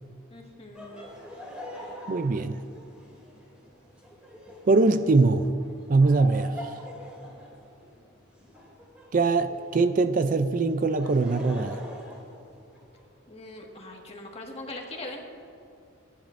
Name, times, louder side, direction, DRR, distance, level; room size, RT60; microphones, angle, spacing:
voice 1, 0.3-1.1 13.3-15.2, left 2 dB, 30° left, 0 dB, 1.7 m, -41 dB
Laughter, 0.7-9.8 10.7-13.0, equal, 5° right, 2.7 m, -44 dB
voice 2, 2.1-2.6 4.7-5.5 5.9-6.7 9.1-11.8, right 3 dB, 40° right, 10 dB, 0.4 m, -22 dB
29.5 x 10.5 x 2.6 m, 2.6 s
head